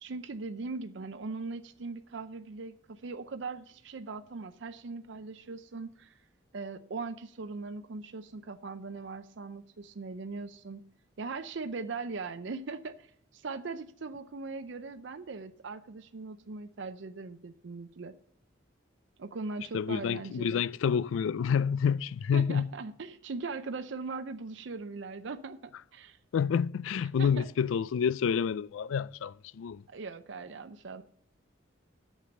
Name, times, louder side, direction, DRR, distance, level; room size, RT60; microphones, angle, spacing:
voice 1, 0.0-6.2 6.5-10.8 11.2-18.1 19.2-20.6 22.3-26.2 27.2-27.5 29.9-31.0, right 4 dB, 65° right, 0.5 m, -40 dB
voice 2, 19.7-22.7 26.3-29.8, left 7 dB, 80° left, 0.3 m, -28 dB
8.3 x 7.4 x 6.9 m
head